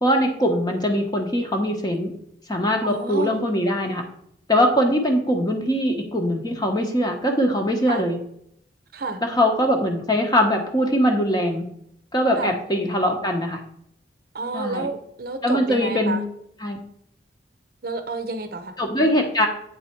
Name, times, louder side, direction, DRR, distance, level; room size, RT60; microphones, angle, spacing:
voice 1, 0.0-2.1 2.5-4.0 4.5-8.2 9.2-11.6 12.1-13.6 14.5-14.9 15.4-16.2 16.6-16.8 18.8-19.5, equal, 20° left, 3 dB, 0.9 m, -21 dB
voice 2, 2.8-3.4 7.9-8.1 8.9-9.2 12.3-12.6 14.3-16.2 17.8-18.7, right 3 dB, 55° right, 8 dB, 0.7 m, -30 dB
8.3 x 4.1 x 4.4 m, 0.71 s
head